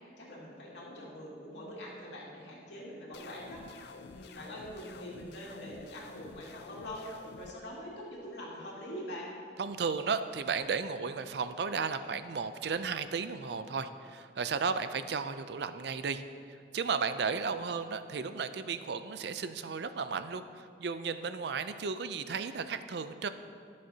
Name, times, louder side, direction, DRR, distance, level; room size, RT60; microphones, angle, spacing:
voice 1, 0.2-9.3, equal, 75° left, -4 dB, 2.3 m, -44 dB
sound 1, 3.1-7.5, left 4 dB, 60° left, 0.4 m, -50 dB
voice 2, 9.6-23.3, right 5 dB, 65° right, 11 dB, 0.4 m, -34 dB
18.0 x 6.4 x 2.8 m, 2.4 s
head